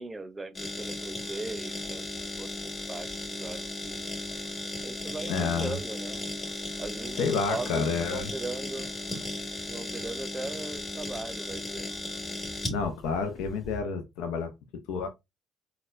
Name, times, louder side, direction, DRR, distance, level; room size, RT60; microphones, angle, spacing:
voice 1, 0.0-4.1 4.8-6.2 6.8-9.0 9.7-11.9, right 2 dB, 20° right, 0.6 m, -39 dB
sound 1, 0.5-13.8, left 1 dB, 30° left, 1.6 m, -36 dB
voice 2, 5.3-5.8 7.2-8.3 12.7-14.5 14.9-15.1, left 5 dB, 85° left, 0.5 m, -29 dB
4.0 x 2.2 x 2.4 m
supercardioid pair, 70°, 0 cm